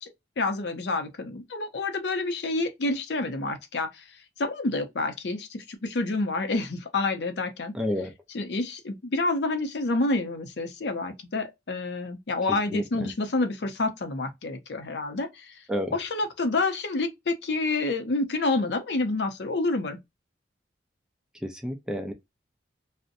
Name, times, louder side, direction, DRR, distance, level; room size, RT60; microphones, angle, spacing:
voice 1, 0.0-4.0 4.4-7.7 8.3-15.6 15.9-20.0, left 2 dB, 65° left, 0.5 m, -28 dB
voice 2, 7.7-8.1 12.7-13.1 15.7-16.0 21.4-22.1, equal, 5° right, 0.4 m, -30 dB
2.6 x 2.1 x 2.5 m
head